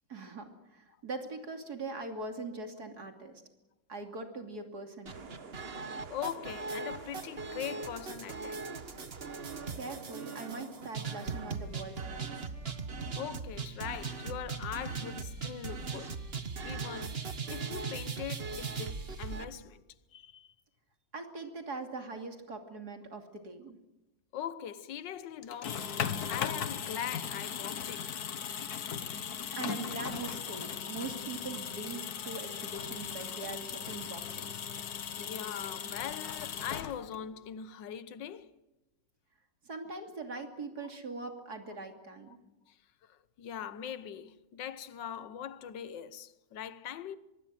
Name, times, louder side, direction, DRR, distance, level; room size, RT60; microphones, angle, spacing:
voice 1, 0.1-3.4 3.9-5.3 9.7-12.4 21.1-23.8 29.0-34.6 39.6-42.4, right 3 dB, 55° right, 3.3 m, -42 dB
sound 1, 5.1-19.5, right 4 dB, 35° right, 1.5 m, -39 dB
voice 2, 6.1-8.6 11.0-11.1 13.2-16.2 16.6-19.8 20.1-20.5 24.3-28.1 30.5-30.6 35.2-38.5 42.3-42.4 42.7-42.8 43.1-47.2, left 9 dB, 75° left, 1.7 m, -41 dB
Wind instrument woodwind instrument, 11.5-19.9, left 2 dB, 40° left, 8.2 m, -61 dB
sound 2, 25.4-37.3, left 7 dB, 60° left, 1.7 m, -38 dB
25.0 x 23.0 x 7.6 m
omnidirectional pair, 2.0 m